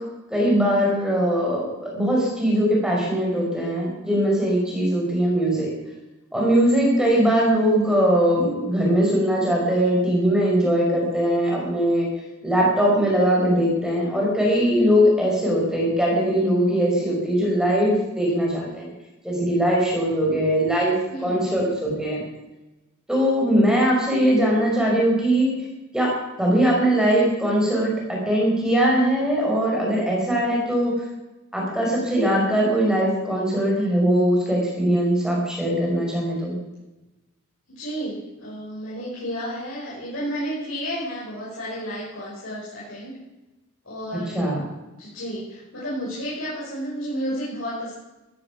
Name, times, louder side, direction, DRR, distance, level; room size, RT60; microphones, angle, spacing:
voice 1, 0.3-5.7 6.3-12.1 12.4-18.9 19.2-20.9 21.2-22.2 23.1-25.5 25.9-30.9 31.5-36.6 44.3-44.6, equal, 5° right, -2 dB, 4.9 m, -21 dB
voice 2, 21.1-21.8 37.7-43.2 43.8-44.5 45.0-47.9, equal, 75° left, -7 dB, 5.8 m, -32 dB
14.5 x 14.5 x 6.0 m, 1.0 s
head